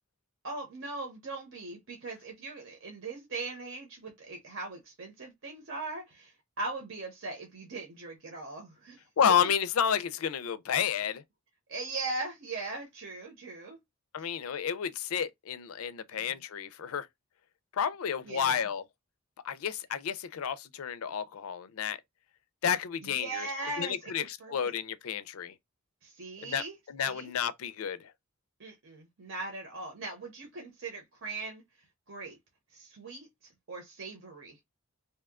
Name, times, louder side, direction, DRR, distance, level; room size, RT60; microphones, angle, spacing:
voice 1, 0.4-9.0 11.7-13.8 16.1-16.4 18.2-18.7 23.0-24.7 26.0-26.7 27.1-27.3 28.6-31.6 32.1-32.4 32.7-33.3 33.7-34.6, right 3 dB, 65° right, 0.9 m, -40 dB
voice 2, 9.2-11.2 14.1-17.1 17.7-18.8 19.4-22.0 22.6-23.5 23.8-25.5 26.4-28.1, left 8 dB, 85° left, 0.4 m, -31 dB
2.8 x 2.2 x 3.5 m
head